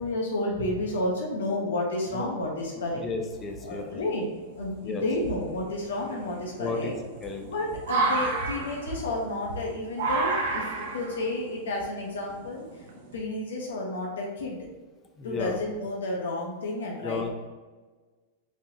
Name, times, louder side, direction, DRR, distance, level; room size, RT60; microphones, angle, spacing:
voice 1, 0.0-3.0 3.6-4.3 4.6-6.9 7.4-12.8 13.1-14.6 15.2-17.3, left 2 dB, 90° left, -1 dB, 0.9 m, -31 dB
voice 2, 2.9-4.0 4.8-5.1 6.6-6.9 7.2-7.7 15.2-15.6 17.0-17.3, left 4 dB, 20° left, 4 dB, 0.6 m, -33 dB
sound 1, 3.3-3.9 4.5-4.6 5.1-13.2, right 3 dB, 70° right, 0.9 m, -31 dB
5.0 x 3.6 x 2.7 m, 1.3 s
hypercardioid pair, 130°, 0 cm